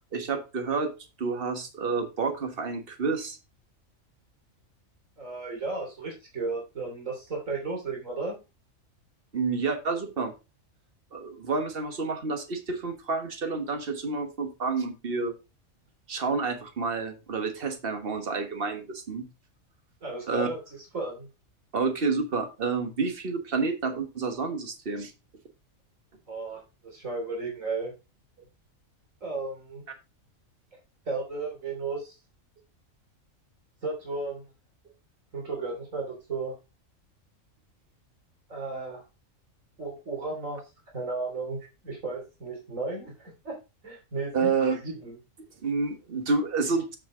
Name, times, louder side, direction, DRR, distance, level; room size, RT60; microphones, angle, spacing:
voice 1, 0.1-0.9 1.2-3.4 9.3-10.3 11.1-15.3 16.1-19.2 20.3-20.5 21.7-25.1 44.3-44.8 45.6-47.0, right 4 dB, 45° right, 6 dB, 1.6 m, -29 dB
voice 2, 5.2-8.4 20.0-21.3 26.3-27.9 29.2-29.8 31.1-32.1 33.8-34.5 35.3-36.5 38.5-39.0 39.8-40.6 40.9-43.6 43.8-45.2, right 3 dB, 75° right, 0 dB, 3.5 m, -34 dB
7.9 x 6.6 x 3.7 m, 0.27 s
omnidirectional pair, 1.4 m